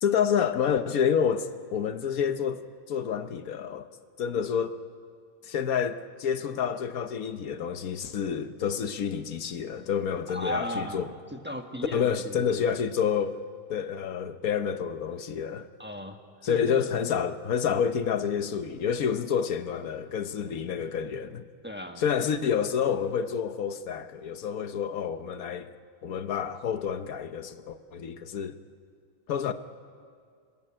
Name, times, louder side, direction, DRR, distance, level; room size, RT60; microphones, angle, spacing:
voice 1, 0.0-2.6 2.9-3.9 4.2-4.8 5.4-11.1 11.9-13.4 13.7-15.7 16.4-21.4 22.0-25.7 26.0-28.6 29.3-29.5, left 7 dB, 80° left, 1.4 m, -28 dB
voice 2, 10.3-12.7 15.8-16.2 16.5-17.0 21.6-22.0, equal, 10° right, 1.3 m, -36 dB
26.0 x 20.5 x 8.8 m
omnidirectional pair, 1.5 m